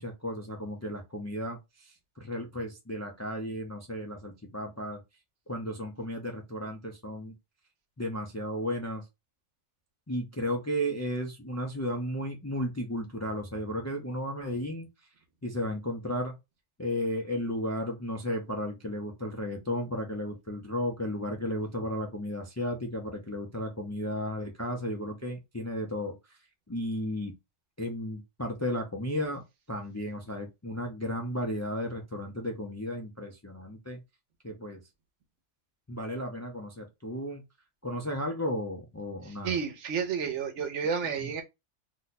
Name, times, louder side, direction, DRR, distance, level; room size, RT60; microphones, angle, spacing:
voice 1, 0.0-5.0 5.5-7.3 8.0-9.0 10.1-14.9 15.4-16.4 16.8-26.4 26.7-27.3 27.8-29.4 29.7-34.0 34.4-34.8 35.9-37.4 37.8-39.6 41.2-41.3, equal, 25° left, 0.3 m, -34 dB
voice 2, 39.2-41.4, right 6 dB, 75° right, 1.0 m, -31 dB
2.7 x 2.2 x 4.0 m
omnidirectional pair, 1.2 m